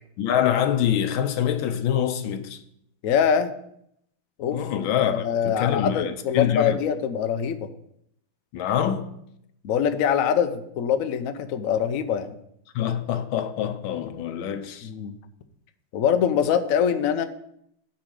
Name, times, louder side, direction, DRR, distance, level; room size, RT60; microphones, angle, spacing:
voice 1, 0.2-2.6 4.5-6.8 8.5-9.1 12.7-14.9, left 9 dB, 85° left, 1.6 m, -25 dB
voice 2, 3.0-3.5 4.4-4.6 5.1-7.7 9.6-12.4 14.8-15.2 15.9-17.2, left 8 dB, 60° left, 0.9 m, -23 dB
8.8 x 4.9 x 7.4 m
omnidirectional pair, 2.2 m